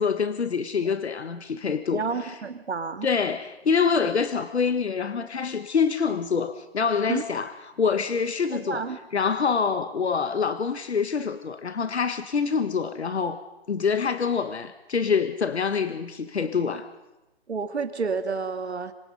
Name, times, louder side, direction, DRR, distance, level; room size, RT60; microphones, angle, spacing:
voice 1, 0.0-2.4 3.0-13.4 13.7-16.9, left 6 dB, 85° left, 11 dB, 1.5 m, -26 dB
voice 2, 1.9-3.1 7.1-7.2 8.7-9.0 17.5-18.9, right 5 dB, 90° right, 9 dB, 2.3 m, -29 dB
28.0 x 25.0 x 5.4 m, 1.0 s
hypercardioid pair, 165°, 32 cm